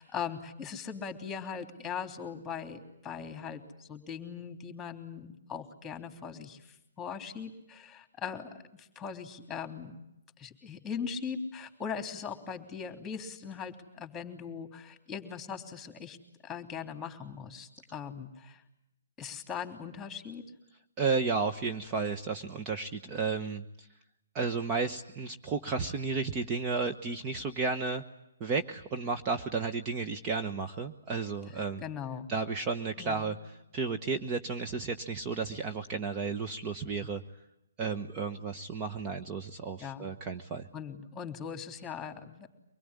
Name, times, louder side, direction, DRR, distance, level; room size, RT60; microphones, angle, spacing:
voice 1, 0.0-6.6 7.0-9.9 10.4-16.2 16.4-18.6 19.2-20.4 31.8-32.3 33.0-33.3 39.8-40.1 40.7-42.5, left 6 dB, 10° left, 7 dB, 3.1 m, -40 dB
voice 2, 21.0-23.9 24.3-28.0 28.4-31.8 32.3-33.4 33.7-37.2 37.8-40.7, right 4 dB, 25° right, 6 dB, 1.2 m, -33 dB
25.0 x 21.0 x 9.8 m, 0.86 s
hypercardioid pair, 140°, 0 cm